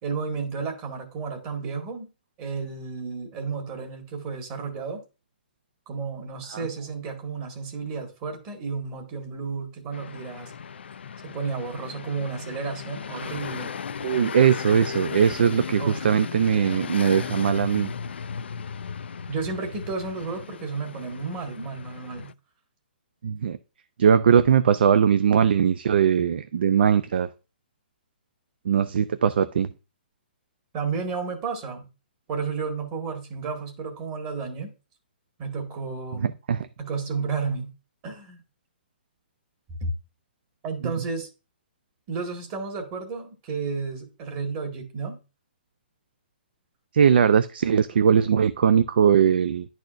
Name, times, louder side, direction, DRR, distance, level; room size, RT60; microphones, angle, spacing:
voice 1, 0.0-2.1 2.4-5.0 5.9-10.5 11.2-13.8 15.8-16.1 19.3-22.3 30.7-31.9 32.3-34.7 35.4-36.3 36.8-37.7 38.0-38.4 39.8-39.9 40.6-41.3 42.1-45.2, right 4 dB, 30° right, 1.8 m, -32 dB
sound 1, 9.9-22.3, left 6 dB, 85° left, 0.3 m, -36 dB
voice 2, 14.0-17.9 23.2-23.6 24.0-27.3 28.7-29.7 36.2-36.7 46.9-49.7, right 7 dB, 70° right, 0.5 m, -20 dB
10.5 x 4.2 x 2.5 m
hypercardioid pair, 150°, 6 cm